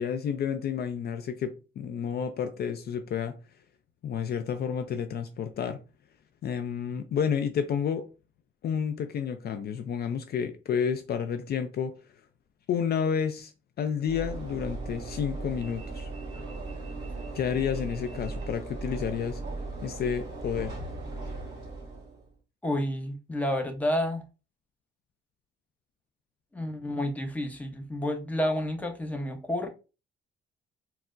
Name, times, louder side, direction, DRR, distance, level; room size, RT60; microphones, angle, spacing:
voice 1, 0.0-3.3 4.0-5.8 6.4-8.1 8.6-11.9 12.7-13.5 13.8-16.1 17.3-19.4 19.8-20.7, left 7 dB, 55° left, 0.4 m, -30 dB
Train / Engine / Alarm, 14.0-22.3, right 3 dB, 20° right, 1.6 m, -37 dB
voice 2, 22.6-24.2 26.5-29.7, left 1 dB, 5° left, 0.7 m, -30 dB
4.2 x 2.0 x 2.4 m
cardioid pair, 90°, 20 cm